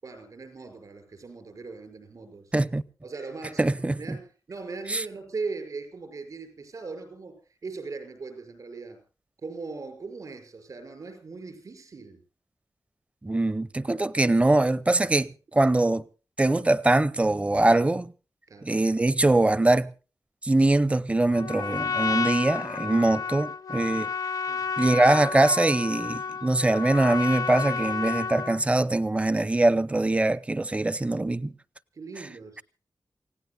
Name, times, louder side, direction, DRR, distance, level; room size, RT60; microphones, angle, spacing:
voice 1, 0.0-2.5 3.0-9.0 9.4-12.2 15.5-15.8 17.6-17.9 18.5-18.7 23.8-24.0 24.4-24.7 31.9-32.6, right 4 dB, 65° right, 5.8 m, -39 dB
voice 2, 2.5-2.8 3.6-4.2 4.9-5.0 13.2-16.0 16.4-18.0 18.6-19.9 20.4-24.1 24.8-31.5, right 2 dB, 20° right, 0.7 m, -23 dB
Trumpet, 21.3-28.6, left 5 dB, 75° left, 0.7 m, -31 dB
29.0 x 17.0 x 2.3 m
wide cardioid pair, 125°, 6 cm